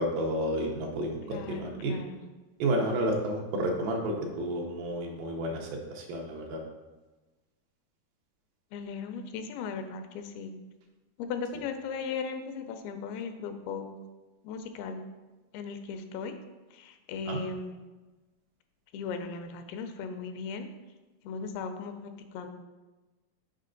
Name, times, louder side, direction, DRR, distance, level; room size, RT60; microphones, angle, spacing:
voice 1, 0.0-1.9 2.6-6.6 17.3-17.4, right 1 dB, 75° right, 1 dB, 2.4 m, -31 dB
voice 2, 1.3-2.2 8.7-10.5 11.2-13.9 14.4-15.0 15.5-16.4 16.7-17.7 18.9-20.7 21.2-22.5, left 5 dB, 85° left, 7 dB, 2.5 m, -37 dB
6.5 x 4.9 x 3.8 m, 1.2 s
omnidirectional pair, 4.4 m